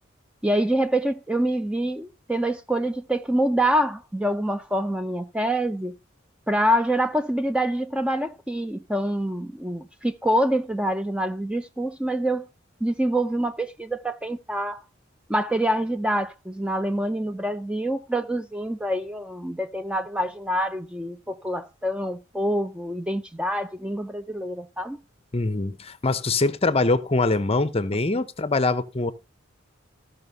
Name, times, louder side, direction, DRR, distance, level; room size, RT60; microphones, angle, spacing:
voice 1, 0.4-5.9 6.5-12.5 12.8-14.8 15.3-25.0, right 1 dB, 5° right, 0.6 m, -26 dB
voice 2, 25.3-29.1, left 3 dB, 30° left, 0.8 m, -23 dB
14.5 x 5.8 x 5.5 m
head